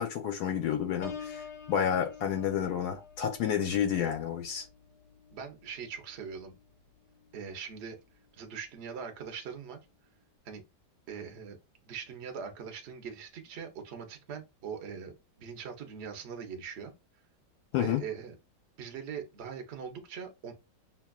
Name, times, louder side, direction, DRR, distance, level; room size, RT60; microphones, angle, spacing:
voice 1, 0.0-4.7 17.7-18.0, left 9 dB, 70° left, 1.0 m, -30 dB
Piano, 1.0-6.6 7.1-7.5, left 6 dB, 85° left, 1.5 m, -48 dB
voice 2, 5.3-6.5 7.3-8.0 8.3-9.8 10.4-10.6 11.1-11.6 11.9-16.9 17.8-18.3 18.8-20.5, right 6 dB, 55° right, 0.7 m, -41 dB
5.8 x 2.3 x 2.3 m
omnidirectional pair, 1.9 m